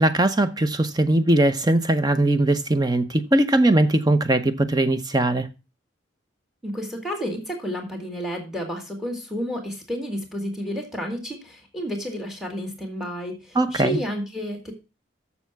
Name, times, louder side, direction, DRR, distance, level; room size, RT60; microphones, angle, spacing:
voice 1, 0.0-5.5 13.5-14.0, right 1 dB, 20° right, 0.7 m, -20 dB
voice 2, 6.6-14.7, equal, ahead, 2.0 m, -31 dB
7.0 x 7.0 x 5.8 m
head